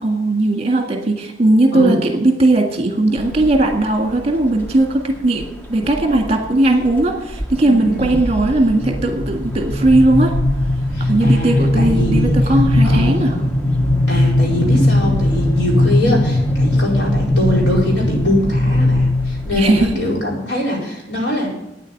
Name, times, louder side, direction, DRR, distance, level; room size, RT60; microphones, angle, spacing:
voice 1, 0.0-10.3 11.0-13.3 19.5-19.9, right 2 dB, 35° right, 3 dB, 1.8 m, -17 dB
sound 1, 3.2-3.7 4.2-4.7 5.4-6.3 6.6-7.0 7.3-19.9, left 1 dB, 10° left, 1.1 m, -18 dB
voice 2, 7.6-8.2 10.9-12.3 12.8-13.3 14.1-21.5, left 1 dB, 70° left, -3 dB, 4.6 m, -22 dB
9.2 x 8.2 x 9.6 m, 0.93 s
head